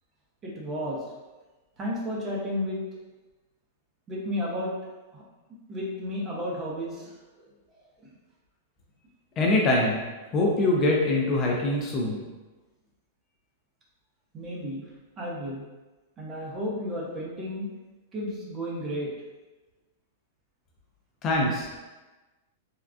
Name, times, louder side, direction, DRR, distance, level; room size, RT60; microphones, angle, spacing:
voice 1, 0.4-1.0 1.8-2.8 4.1-4.7 5.1-5.2 5.7-7.5 14.3-14.8 15.2-15.6 16.2-17.7 18.1-19.1, equal, 25° right, -4 dB, 0.7 m, -32 dB
voice 2, 9.4-10.0 10.3-12.2 21.2-21.7, left 2 dB, 30° left, -2 dB, 0.4 m, -23 dB
3.6 x 2.2 x 2.4 m, 1.2 s
supercardioid pair, 150°, 0 cm